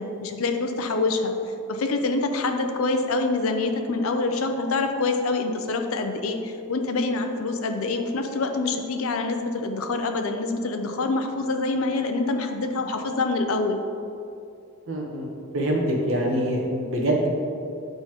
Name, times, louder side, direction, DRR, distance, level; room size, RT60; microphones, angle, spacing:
voice 1, 0.0-1.3 1.7-13.8, left 3 dB, 75° left, 6 dB, 0.6 m, -26 dB
voice 2, 14.9-15.3 15.5-17.3, right 1 dB, 65° right, -2 dB, 1.1 m, -24 dB
7.6 x 5.5 x 3.0 m, 2.6 s
head